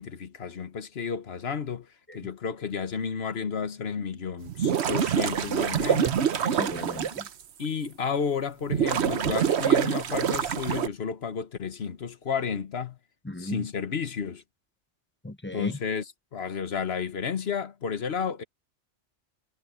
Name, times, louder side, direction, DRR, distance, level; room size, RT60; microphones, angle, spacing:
voice 1, 0.0-1.9 2.1-6.2 7.6-13.0 13.4-14.4 15.5-18.4, left 6 dB, 60° left, 1.4 m, -32 dB
sound 1, 4.5-7.3 7.9-8.0 8.7-10.9, right 8 dB, 70° right, 1.1 m, -25 dB
voice 2, 6.4-7.3 13.3-13.7 15.2-15.7, left 1 dB, 15° left, 0.5 m, -35 dB
omnidirectional pair, 1.2 m